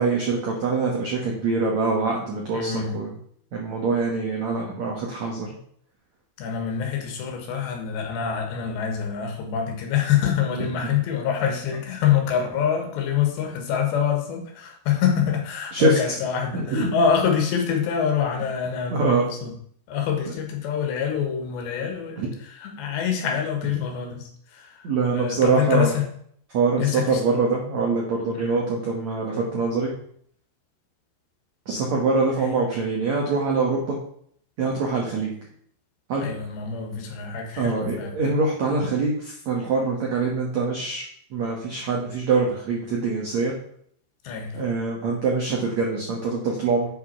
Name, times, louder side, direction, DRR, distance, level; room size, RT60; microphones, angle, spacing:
voice 1, 0.0-3.1 3.5-5.6 10.8-10.9 15.7-16.0 16.7-16.9 18.9-19.2 22.2-22.3 24.8-25.9 26.5-29.9 31.7-34.0 34.6-35.3 36.1-36.3 37.6-41.1 41.3-43.5 44.5-46.9, right 4 dB, 70° right, -1 dB, 1.7 m, -24 dB
voice 2, 2.5-3.0 6.4-19.6 19.9-26.1 26.8-27.2 28.4-28.6 32.3-32.6 36.2-38.2 44.2-44.6, left 8 dB, 70° left, 3 dB, 3.7 m, -26 dB
8.7 x 6.1 x 5.8 m, 0.64 s
omnidirectional pair, 5.5 m